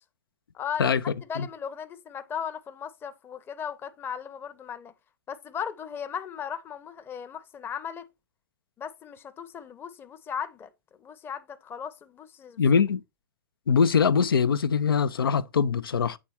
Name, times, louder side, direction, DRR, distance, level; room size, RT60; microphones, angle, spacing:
voice 1, 0.5-4.9 5.3-8.1 8.8-10.7 11.0-12.8, left 8 dB, 20° left, 0.7 m, -37 dB
voice 2, 12.6-13.0 13.7-16.2, left 6 dB, 90° left, 0.5 m, -22 dB
8.2 x 3.6 x 4.3 m
hypercardioid pair, 125°, 12 cm